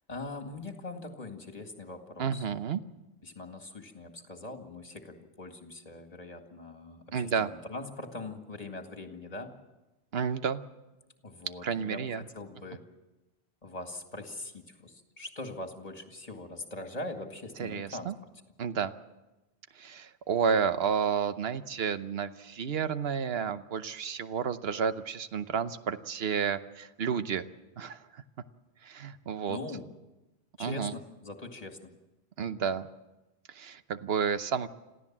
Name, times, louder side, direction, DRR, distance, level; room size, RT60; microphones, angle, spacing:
voice 1, 0.1-2.5 3.2-9.5 11.2-12.9 13.6-18.1 29.5-29.9 30.6-31.9, left 2 dB, 35° left, 5 dB, 2.2 m, -42 dB
voice 2, 2.2-2.8 7.1-7.5 10.1-10.6 11.6-12.2 17.6-18.1 18.6-18.9 19.7-27.5 27.8-28.2 28.8-29.6 30.6-30.9 32.4-32.9 33.5-34.7, right 6 dB, 70° right, 11 dB, 1.1 m, -31 dB
27.0 x 15.5 x 7.4 m, 1.0 s
omnidirectional pair, 1.1 m